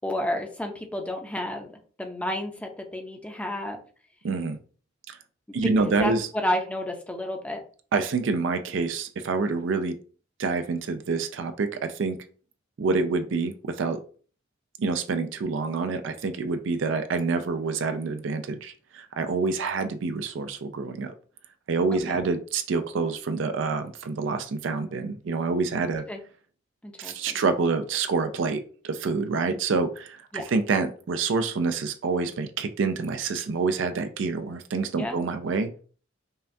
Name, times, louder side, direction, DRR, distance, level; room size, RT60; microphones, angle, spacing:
voice 1, 0.0-3.8 5.5-5.6 5.8-7.6 22.1-22.2 26.1-26.2 26.8-27.4 30.3-30.4 34.9-35.2, left 1 dB, 5° left, 4 dB, 0.5 m, -31 dB
voice 2, 4.2-4.6 5.1-5.2 5.5-6.3 7.9-10.0 10.4-12.2 12.8-14.0 14.8-21.1 21.7-26.1 27.0-35.9, right 4 dB, 65° right, 9 dB, 0.4 m, -27 dB
5.4 x 2.2 x 2.6 m, 0.41 s
head